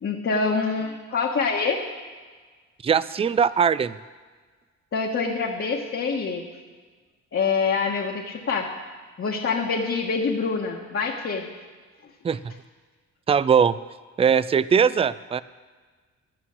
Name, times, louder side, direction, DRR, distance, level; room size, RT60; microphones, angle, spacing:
voice 1, 0.0-1.8 4.9-6.5 7.3-8.7 9.2-11.5, left 4 dB, 45° left, -2 dB, 1.4 m, -25 dB
voice 2, 2.8-3.9 12.2-12.4 13.3-13.8 14.2-15.4, right 7 dB, 20° right, 17 dB, 0.3 m, -20 dB
11.0 x 8.9 x 7.2 m, 1.4 s
cardioid pair, 90°, 30 cm